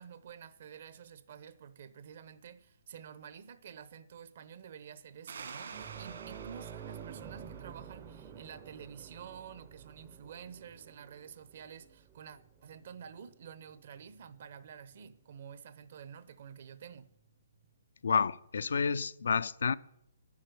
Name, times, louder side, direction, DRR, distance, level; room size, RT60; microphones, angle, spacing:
voice 1, 0.0-17.1, right 7 dB, 45° right, 0.9 m, -50 dB
sound 1, 5.3-8.6, right 5 dB, 65° right, 1.9 m, -49 dB
sound 2, 5.7-14.7 15.0-15.2 17.2-17.3, right 8 dB, 15° right, 0.6 m, -50 dB
voice 2, 18.0-19.8, left 5 dB, 70° left, 0.5 m, -29 dB
9.8 x 7.3 x 9.2 m
hypercardioid pair, 165°, 0 cm